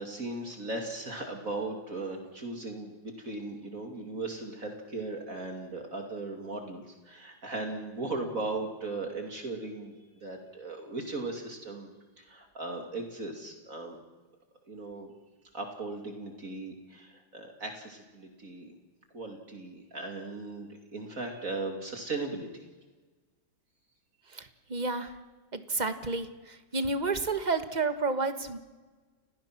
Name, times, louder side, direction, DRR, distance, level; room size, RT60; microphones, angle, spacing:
voice 1, 0.0-10.0 10.2-14.0 14.7-15.1 15.5-18.7 19.1-22.6, right 2 dB, 45° right, 3 dB, 2.9 m, -38 dB
voice 2, 24.3-25.2 25.5-28.6, right 3 dB, 25° right, 9 dB, 1.4 m, -31 dB
30.0 x 18.0 x 6.0 m, 1.3 s
omnidirectional pair, 2.1 m